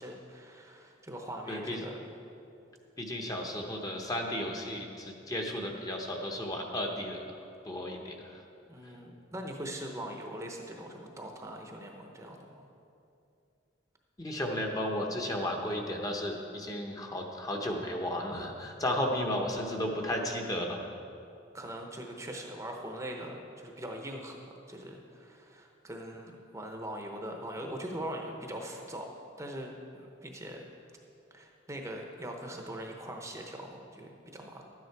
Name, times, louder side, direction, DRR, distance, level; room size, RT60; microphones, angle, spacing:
voice 1, 0.0-2.0 8.7-12.7 21.5-29.1 29.4-30.6 31.3-34.6, right 1 dB, 15° right, 2 dB, 0.8 m, -41 dB
voice 2, 1.5-1.8 3.0-7.2 7.6-8.4 14.2-20.9, left 1 dB, 20° left, 1 dB, 0.8 m, -34 dB
12.0 x 9.5 x 4.7 m, 2.7 s
head